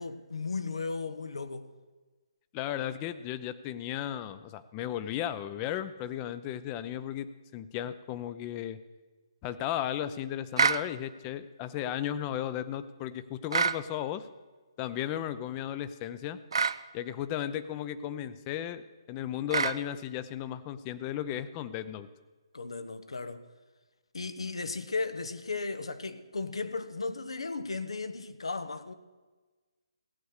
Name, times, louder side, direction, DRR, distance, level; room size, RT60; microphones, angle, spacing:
voice 1, 0.0-1.7 22.5-23.4 24.1-28.9, left 4 dB, 80° left, 1.0 m, -35 dB
voice 2, 2.5-7.3 7.5-8.8 9.4-14.3 14.8-16.4 16.9-22.1, left 11 dB, 25° left, 0.6 m, -35 dB
sound 1, 10.6-10.8 13.5-13.8 16.5-16.8 19.5-19.8, right 5 dB, 65° right, 0.5 m, -26 dB
16.0 x 8.0 x 6.6 m
figure-of-eight pair, 145°, 3 cm